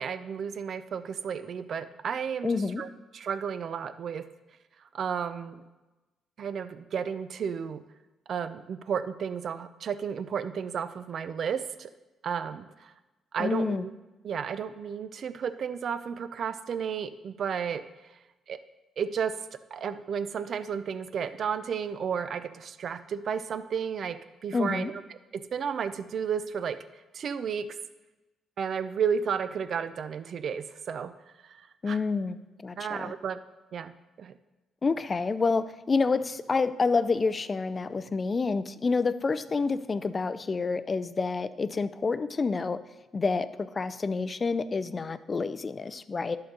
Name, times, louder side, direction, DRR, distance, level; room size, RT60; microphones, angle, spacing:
voice 1, 0.0-2.5 2.8-2.9 3.1-4.3 4.9-5.6 6.4-7.8 8.3-11.9 12.2-12.9 13.3-13.9 14.2-17.9 18.5-18.6 19.0-25.0 25.3-26.8 27.1-27.8 28.6-31.1 31.5-31.6 31.9-32.0 32.8-33.4 33.7-33.9 34.2-34.3, right 7 dB, 60° right, 12 dB, 0.5 m, -32 dB
voice 2, 2.4-2.8 13.4-13.9 24.5-24.9 31.8-33.1 34.8-42.8 43.1-46.4, left 4 dB, 35° left, 14 dB, 0.4 m, -28 dB
11.5 x 3.8 x 6.5 m, 1.1 s
cardioid pair, 90°, 0 cm